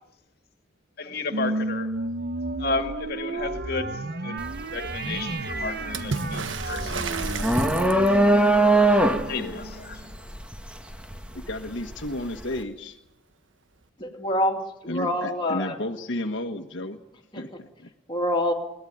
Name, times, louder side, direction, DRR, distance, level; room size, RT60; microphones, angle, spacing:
voice 1, 1.0-1.9 2.6-8.4 8.8-8.9 9.3-10.0, left 3 dB, 50° left, 2.1 m, -33 dB
sound 1, 1.3-10.1, right 2 dB, 55° right, 1.0 m, -33 dB
sound 2, 4.4-4.6 5.0-12.0, right 1 dB, 5° right, 1.5 m, -22 dB
Water / Splash splatter, 5.9-8.3 11.6-11.7 12.0-12.7 13.8-13.9, right 5 dB, 75° right, 1.4 m, -33 dB
voice 2, 11.3-13.0 14.9-17.0 17.4-17.9, left 1 dB, 70° left, 1.4 m, -32 dB
voice 3, 14.0-15.7 17.3-17.4 18.1-18.5, left 1 dB, 25° left, 2.6 m, -26 dB
22.0 x 18.0 x 9.4 m
head